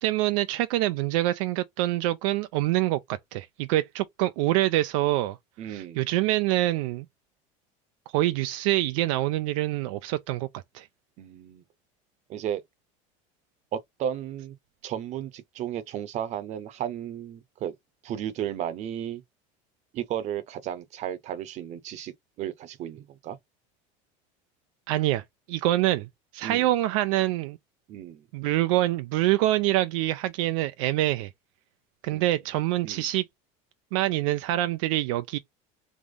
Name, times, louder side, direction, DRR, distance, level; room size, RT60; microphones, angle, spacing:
voice 1, 0.0-5.4 5.7-7.1 8.1-10.5 10.7-10.9 24.9-27.6 28.3-31.3 32.0-33.2 33.9-35.4, right 16 dB, 80° right, 0.4 m, -25 dB
voice 2, 5.6-6.0 11.2-11.6 12.3-12.6 13.7-14.5 14.8-17.7 18.0-19.2 19.9-22.1 22.4-23.4 26.4-26.7 27.9-28.2 32.1-32.4 32.8-33.1, right 10 dB, 45° right, 0.8 m, -34 dB
3.6 x 3.0 x 3.6 m
cardioid pair, 140°, 17 cm